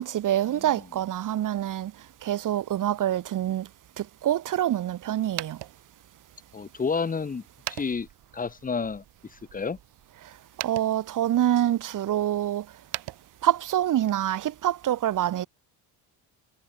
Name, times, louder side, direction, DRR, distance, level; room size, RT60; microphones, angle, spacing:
voice 1, 0.0-1.9 2.2-3.7 4.0-5.6 10.2-10.3 10.6-12.7 13.4-15.5, right 12 dB, 50° right, 2.0 m, -26 dB
sound 1, 5.2-13.9, right 16 dB, 70° right, 5.2 m, -43 dB
voice 2, 6.5-7.4 7.7-8.1 8.3-9.0 9.3-9.8, left 5 dB, 20° left, 2.3 m, -30 dB
cardioid pair, 160°, 41 cm